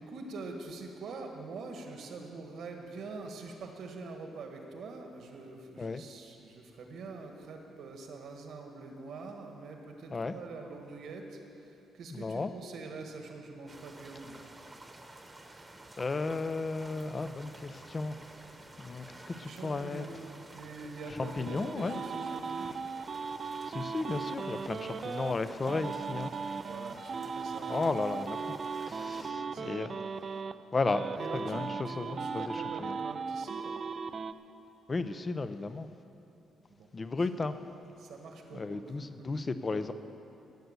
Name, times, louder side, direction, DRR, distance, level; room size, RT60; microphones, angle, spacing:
voice 1, 0.0-14.4 19.4-20.2 20.5-22.7 26.7-27.9 28.3-29.7 30.3-30.4 30.9-33.8 36.8-36.9 37.2-37.3 38.0-39.3, right 3 dB, 70° right, 3 dB, 1.7 m, -45 dB
voice 2, 12.1-12.5 16.0-18.2 18.8-20.0 21.1-22.0 23.7-26.3 27.7-28.6 28.9-30.2 30.7-31.0 31.3-33.0 34.9-35.9 36.9-37.6 38.5-39.9, left 3 dB, 30° left, 11 dB, 0.6 m, -34 dB
sound 1, 13.7-29.3, right 2 dB, 20° right, 1.2 m, -51 dB
sound 2, 21.0-25.3 25.7-30.5 30.9-34.3, right 5 dB, 45° right, 0.4 m, -37 dB
16.0 x 6.7 x 8.1 m, 2.8 s
cardioid pair, 90°, 0 cm